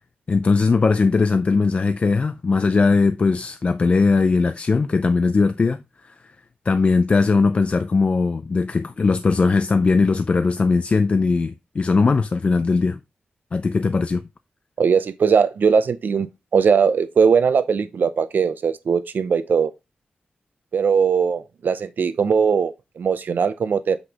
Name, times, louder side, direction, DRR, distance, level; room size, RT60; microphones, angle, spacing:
voice 1, 0.3-6.1 6.7-13.0 13.5-14.2, left 4 dB, 40° left, 0.4 m, -19 dB
voice 2, 14.8-16.3 16.5-19.7 20.7-24.0, right 6 dB, 75° right, 0.5 m, -19 dB
7.9 x 5.2 x 2.8 m
wide cardioid pair, 145°, 3 cm